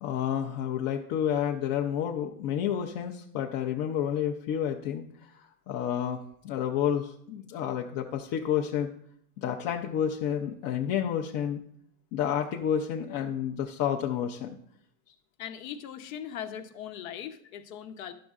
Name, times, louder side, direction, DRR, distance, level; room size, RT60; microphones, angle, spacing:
voice 1, 0.0-8.9 9.4-11.6 12.1-14.6, left 9 dB, 40° left, 2 dB, 0.5 m, -30 dB
voice 2, 15.4-18.1, left 9 dB, 75° left, 8 dB, 0.9 m, -39 dB
11.0 x 6.3 x 2.4 m, 0.68 s
supercardioid pair, 130°, 43 cm